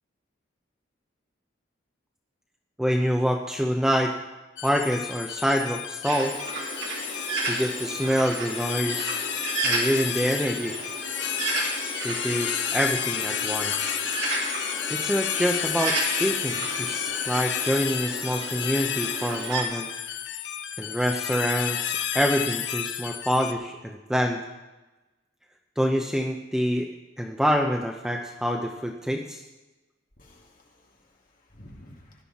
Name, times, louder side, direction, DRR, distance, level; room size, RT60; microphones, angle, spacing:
voice 1, 2.8-4.1 4.6-6.4 7.5-9.3 9.6-10.8 12.0-13.9 14.9-19.9 20.8-24.4 25.8-26.9 27.2-29.4, equal, 5° right, 2 dB, 0.6 m, -26 dB
sound 1, 4.6-23.5, left 9 dB, 60° left, 0.7 m, -31 dB
Bird, 6.0-19.6, right 3 dB, 60° right, 2.7 m, -33 dB
voice 2, 30.2-32.2, left 1 dB, 45° left, -1 dB, 2.5 m, -52 dB
17.0 x 11.0 x 4.2 m, 1.1 s
head